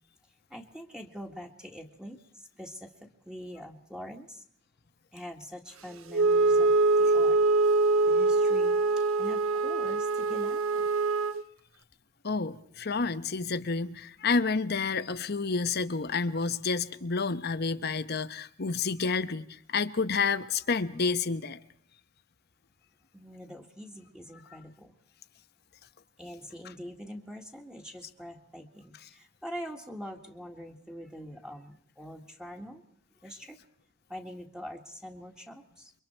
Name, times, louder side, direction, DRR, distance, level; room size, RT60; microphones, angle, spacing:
voice 1, 0.3-4.4 5.1-7.4 8.1-10.9 23.1-24.9 26.2-32.8 33.2-33.6 34.1-35.9, equal, 5° right, 1.9 m, -44 dB
Wind instrument woodwind instrument, 6.1-11.4, right 3 dB, 80° right, 0.8 m, -24 dB
voice 2, 12.2-21.6, left 4 dB, 50° left, 1.0 m, -29 dB
28.5 x 24.0 x 4.5 m
head